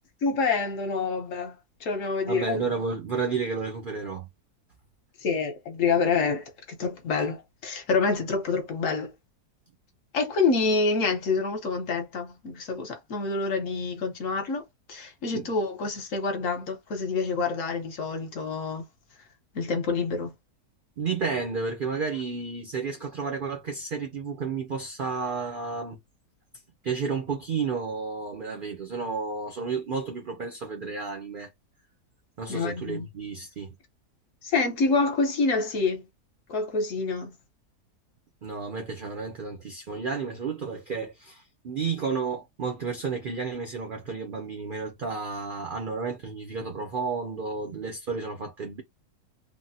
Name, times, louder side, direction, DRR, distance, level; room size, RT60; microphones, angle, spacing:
voice 1, 0.2-1.6 1.8-2.6 5.2-6.5 6.8-9.1 10.1-14.6 14.9-18.9 19.5-20.3 32.5-33.1 34.4-36.0 36.5-37.3, left 4 dB, 60° left, 1.1 m, -27 dB
voice 2, 2.3-4.3 15.3-15.5 21.0-26.0 26.8-31.5 32.4-33.7 38.4-48.8, right 5 dB, 75° right, 0.4 m, -32 dB
3.4 x 2.0 x 2.7 m
omnidirectional pair, 1.7 m